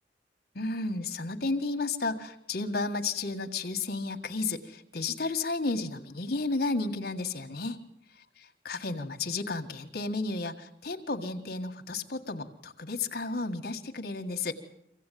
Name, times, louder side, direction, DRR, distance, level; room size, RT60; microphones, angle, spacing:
voice 1, 0.6-7.8 8.7-14.5, left 3 dB, 60° left, 4 dB, 1.8 m, -32 dB
25.0 x 16.5 x 9.4 m, 0.79 s
head